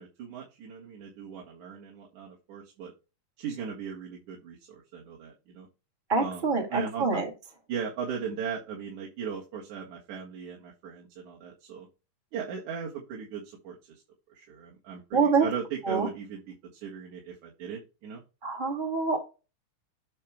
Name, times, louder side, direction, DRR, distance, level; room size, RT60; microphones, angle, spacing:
voice 1, 0.0-2.9 3.4-5.7 6.2-7.1 7.7-11.9 12.3-14.0 14.3-18.2, right 7 dB, 70° right, -3 dB, 3.0 m, -38 dB
voice 2, 6.1-7.3 15.1-15.4 15.9-16.1 18.4-19.2, right 4 dB, 30° right, 1 dB, 0.9 m, -26 dB
8.5 x 4.7 x 3.4 m, 0.29 s
omnidirectional pair, 3.6 m